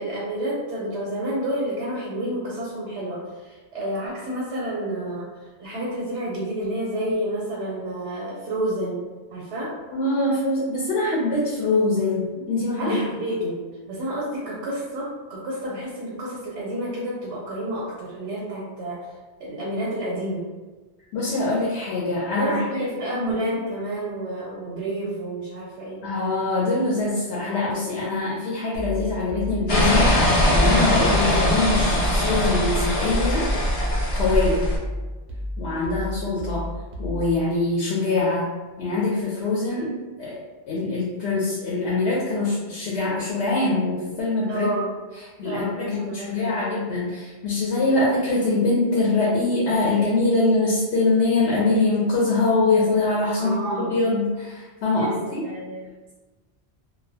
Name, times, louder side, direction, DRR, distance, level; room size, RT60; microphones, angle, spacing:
voice 1, 0.0-5.3 5.6-9.0 9.3-9.7 12.8-13.6 13.9-19.0 19.4-20.4 22.3-26.0 44.5-44.9 45.4-46.8 47.8-48.0 53.4-54.0 54.9-56.1, right 1 dB, 85° right, -5 dB, 0.9 m, -30 dB
voice 2, 9.9-13.0 21.1-22.7 23.3-23.4 26.0-33.4 34.1-34.7 35.6-36.6 37.0-38.5 38.8-39.9 40.2-40.4 40.7-44.7 45.2-53.6 53.9-55.4, left 3 dB, 75° left, -6 dB, 0.8 m, -23 dB
sound 1, 28.7-37.4, left 1 dB, 55° right, 0.5 m, -33 dB
sound 2, 29.7-34.8, left 1 dB, 45° left, 0.5 m, -21 dB
2.3 x 2.1 x 2.6 m, 1.2 s
omnidirectional pair, 1.1 m